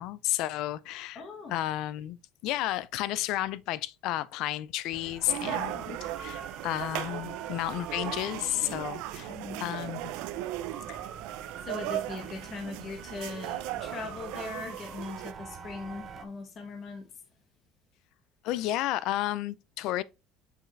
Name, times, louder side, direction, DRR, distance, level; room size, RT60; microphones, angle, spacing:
voice 1, 0.0-1.2 1.5-9.3 9.6-10.1 10.9-11.0 18.4-20.0, left 14 dB, 55° left, 0.4 m, -32 dB
voice 2, 1.1-1.6 9.2-9.7 11.6-17.1, left 4 dB, 30° left, 1.5 m, -40 dB
sound 1, 4.9-16.2, right 7 dB, 30° right, 0.6 m, -45 dB
sound 2, 5.3-15.3, right 14 dB, 75° right, 0.6 m, -37 dB
6.2 x 5.0 x 3.2 m
cardioid pair, 165°, 0 cm